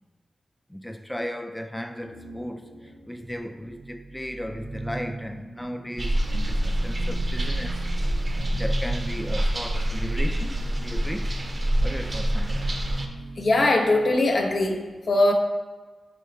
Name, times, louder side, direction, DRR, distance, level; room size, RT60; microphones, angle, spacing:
voice 1, 0.7-7.8 8.3-11.3 11.8-12.7, equal, 10° left, 0.3 m, -35 dB
sound 1, 2.0-14.7, right 2 dB, 75° right, 0.7 m, -43 dB
sound 2, 6.0-13.1, right 1 dB, 40° right, 0.5 m, -26 dB
voice 2, 13.4-15.3, left 2 dB, 65° left, 0.6 m, -21 dB
3.9 x 3.2 x 3.8 m
cardioid pair, 40°, 0 cm